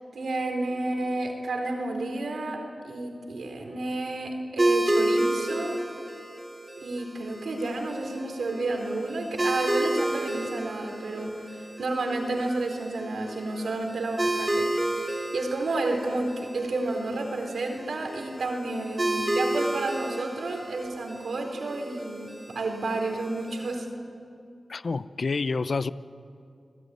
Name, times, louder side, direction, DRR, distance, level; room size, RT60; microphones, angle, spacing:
voice 1, 0.1-5.8 6.8-14.7 15.3-23.9, right 2 dB, 85° right, 4.2 m, -31 dB
sound 1, 4.6-23.7, right 1 dB, 25° right, 5.5 m, -31 dB
voice 2, 24.7-25.9, left 4 dB, 65° left, 0.8 m, -28 dB
29.5 x 19.5 x 9.6 m
cardioid pair, 50°, 0 cm